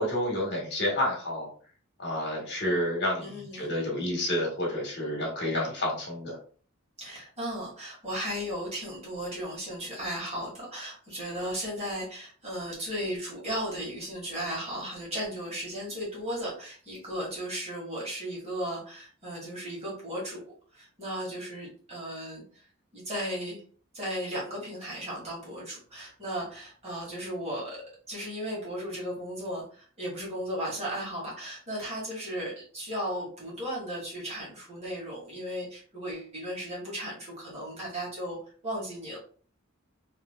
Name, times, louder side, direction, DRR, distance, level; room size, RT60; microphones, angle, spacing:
voice 1, 0.0-1.5 2.0-6.4, left 1 dB, 55° left, -2 dB, 1.4 m, -29 dB
voice 2, 3.2-3.7 7.0-20.4 20.7-22.4 22.9-23.6 23.9-27.8 28.1-38.4 38.6-39.2, equal, 30° right, -5 dB, 1.6 m, -35 dB
3.2 x 3.0 x 2.3 m, 0.42 s
head